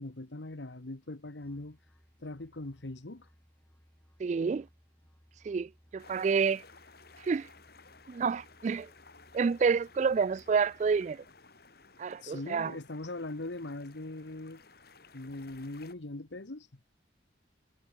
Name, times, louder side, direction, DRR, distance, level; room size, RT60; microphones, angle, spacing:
voice 1, 0.0-1.8 2.2-3.3 12.2-14.6 15.1-16.7, left 2 dB, 85° left, 1.4 m, -41 dB
Musical instrument, 1.4-11.3, equal, 10° left, 4.9 m, -64 dB
voice 2, 4.2-4.7 5.4-6.6 7.2-7.5 8.1-8.9 9.3-11.2 12.0-12.7, right 5 dB, 40° right, 0.3 m, -29 dB
sound 1, 6.0-15.9, left 4 dB, 60° left, 3.4 m, -57 dB
head